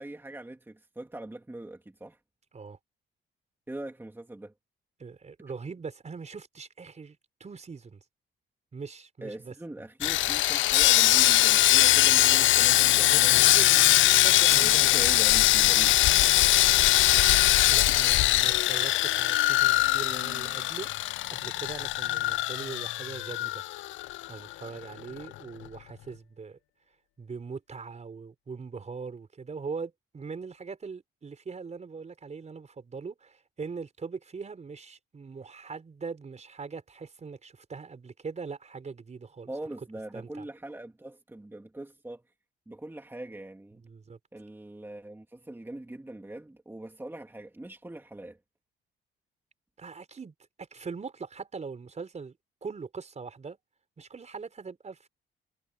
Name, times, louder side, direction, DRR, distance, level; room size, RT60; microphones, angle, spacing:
voice 1, 0.0-2.2 3.7-4.5 9.2-13.6 14.6-15.9 39.5-42.2 42.7-43.8 44.3-48.4, right 1 dB, 10° right, 2.4 m, -42 dB
voice 2, 5.0-8.0 8.7-9.5 13.1-14.9 17.6-20.9 21.3-23.6 24.3-26.6 27.2-39.5 40.1-40.5 43.7-44.2 49.8-52.4 52.6-53.6 54.0-55.1, right 5 dB, 35° right, 4.5 m, -41 dB
Sawing, 10.0-24.3 24.5-24.7 25.2-25.3, left 16 dB, 75° left, 0.4 m, -22 dB
cardioid pair, 90°, 20 cm